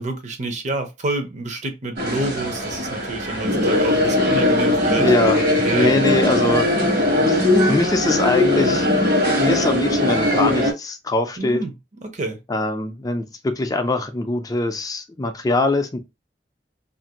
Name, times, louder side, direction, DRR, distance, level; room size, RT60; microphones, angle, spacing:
voice 1, 0.0-5.1 5.6-6.2 11.4-11.7 12.0-12.4, right 2 dB, 40° right, 0.7 m, -28 dB
sound 1, 2.0-10.7, left 1 dB, 60° right, 1.2 m, -19 dB
voice 2, 5.0-6.7 7.2-8.9 9.4-11.6 12.5-16.0, left 2 dB, 20° left, 0.4 m, -22 dB
2.8 x 2.5 x 2.8 m
head